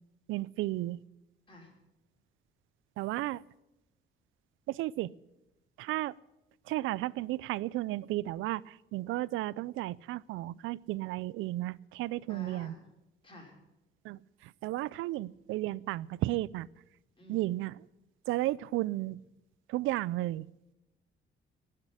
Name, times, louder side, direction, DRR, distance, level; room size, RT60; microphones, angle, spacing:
voice 1, 0.3-1.0 3.0-3.4 4.7-5.1 5.8-6.1 6.7-12.7 14.0-16.7 17.3-17.9 18.3-19.2 19.7-20.5, right 17 dB, 90° right, 23 dB, 0.4 m, -33 dB
voice 2, 12.3-12.8 13.2-13.5 17.2-17.5, left 2 dB, 25° left, 0 dB, 5.4 m, -50 dB
17.5 x 6.6 x 9.8 m, 0.97 s
cardioid pair, 90°, 20 cm